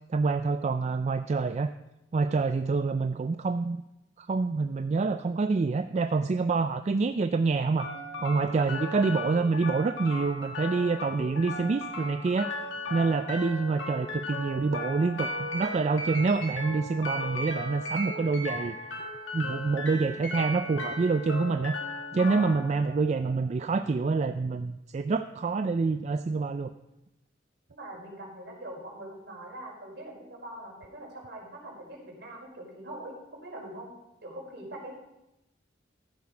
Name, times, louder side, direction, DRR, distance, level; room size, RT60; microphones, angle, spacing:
voice 1, 0.1-1.7 2.1-3.8 4.2-7.9 8.2-12.5 12.9-18.8 19.3-21.7 22.1-26.7, right 4 dB, 35° right, 9 dB, 0.3 m, -27 dB
sound 1, 7.8-23.8, left 1 dB, 70° left, 1.7 m, -36 dB
voice 2, 27.7-33.9 34.2-34.9, right 1 dB, 65° right, -4 dB, 4.7 m, -43 dB
14.0 x 7.2 x 4.9 m, 0.90 s
head